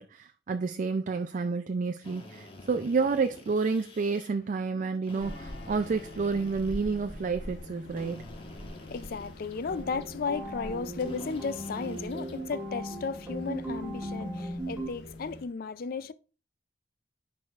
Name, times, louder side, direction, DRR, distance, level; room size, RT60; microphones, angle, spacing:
voice 1, 0.0-8.3, right 4 dB, 45° right, 0.4 m, -30 dB
Drill, 2.0-4.3 5.0-7.3 7.9-9.8 11.0-12.4, left 2 dB, 30° left, 1.3 m, -50 dB
sound 1, 5.2-15.4, left 1 dB, 80° left, 1.2 m, -45 dB
voice 2, 8.5-16.1, left 5 dB, 55° left, 0.4 m, -35 dB
sound 2, 9.7-14.9, right 1 dB, 15° right, 1.4 m, -38 dB
10.5 x 4.8 x 2.4 m
head